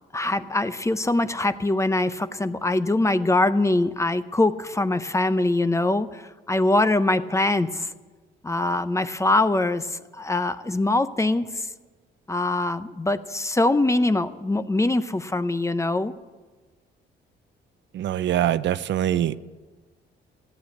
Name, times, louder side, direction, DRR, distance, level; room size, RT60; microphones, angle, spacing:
voice 1, 0.1-7.9 8.4-11.7 12.3-16.1, left 2 dB, 15° left, 0.6 m, -23 dB
voice 2, 17.9-19.4, right 11 dB, 65° right, 0.6 m, -23 dB
15.0 x 9.6 x 8.4 m
cardioid pair, 90°, 20 cm